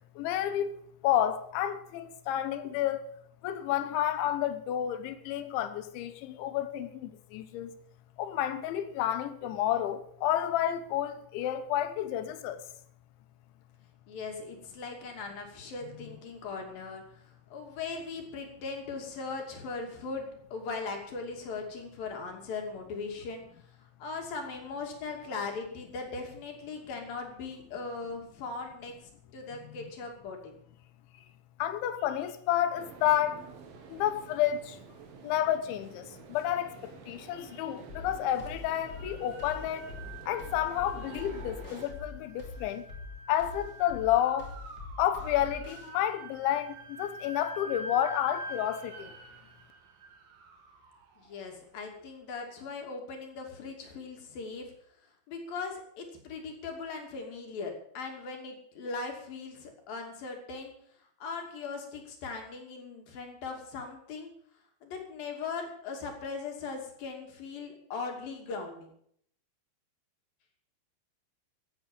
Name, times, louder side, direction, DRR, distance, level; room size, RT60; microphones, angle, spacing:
voice 1, 0.2-0.7 1.0-3.0 3.4-7.8 8.2-12.6 29.8-29.9 31.6-33.4 33.9-34.8 35.2-39.9 40.3-42.8 43.3-44.5 45.0-49.1, left 11 dB, 80° left, 3.5 m, -30 dB
voice 2, 14.1-23.4 24.0-28.9 29.3-30.5 51.2-54.7 55.3-60.7 61.2-64.3 64.8-68.9, left 4 dB, 55° left, 4.1 m, -39 dB
sound 1, 32.7-41.9, right 6 dB, 60° right, 3.2 m, -49 dB
sound 2, 37.9-45.9, left 4 dB, 25° left, 3.0 m, -44 dB
sound 3, 39.0-52.0, right 1 dB, 85° right, 4.9 m, -47 dB
16.0 x 8.8 x 7.3 m
omnidirectional pair, 5.4 m